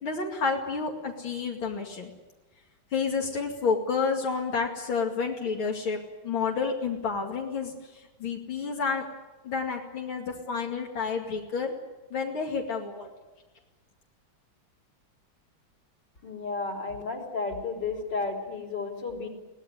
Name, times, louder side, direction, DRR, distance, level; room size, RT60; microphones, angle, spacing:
voice 1, 0.0-2.1 2.9-7.7 8.2-9.0 9.4-11.7 12.1-13.1, left 5 dB, 90° left, 0 dB, 3.2 m, -30 dB
voice 2, 16.2-19.3, left 4 dB, 60° left, 2 dB, 4.4 m, -32 dB
23.0 x 18.0 x 9.8 m, 1.1 s
omnidirectional pair, 2.2 m